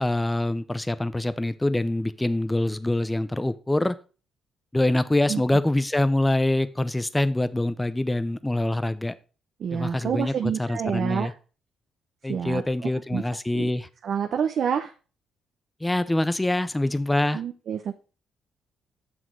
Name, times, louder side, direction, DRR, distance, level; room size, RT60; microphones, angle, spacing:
voice 1, 0.0-4.0 4.7-9.1 9.7-11.3 12.2-13.9 15.8-17.4, left 1 dB, 10° left, 0.6 m, -25 dB
voice 2, 9.6-11.3 12.3-13.2 13.5-13.7 14.0-14.9 17.3-17.9, right 7 dB, 60° right, 0.7 m, -28 dB
7.3 x 6.3 x 4.6 m
cardioid pair, 90°, 0 cm